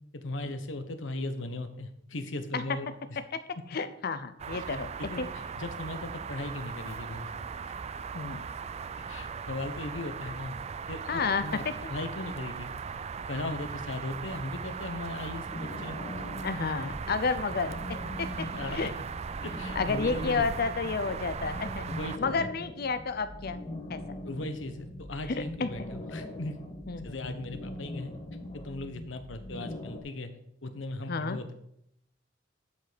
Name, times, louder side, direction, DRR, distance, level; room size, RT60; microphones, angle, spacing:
voice 1, 0.1-3.2 4.5-5.3 5.6-7.3 9.1-10.6 10.9-12.7 13.3-16.0 16.9-17.0 18.5-18.9 19.4-20.7 21.0-21.2 21.9-22.5 24.2-26.5 26.9-28.1 28.5-30.3 30.6-31.5, left 2 dB, 90° left, 8 dB, 1.1 m, -38 dB
voice 2, 3.7-4.9 5.2-5.3 8.1-8.5 11.1-11.9 16.4-18.9 19.7-21.9 22.2-23.6 23.9-24.0 25.3-25.9 26.9-27.7 31.1-31.4, left 4 dB, 55° left, 11 dB, 0.6 m, -31 dB
sound 1, 4.4-22.2, right 6 dB, 35° right, 0.4 m, -38 dB
sound 2, 15.5-30.0, left 1 dB, 30° left, 1.4 m, -42 dB
11.5 x 5.4 x 5.1 m, 0.77 s
head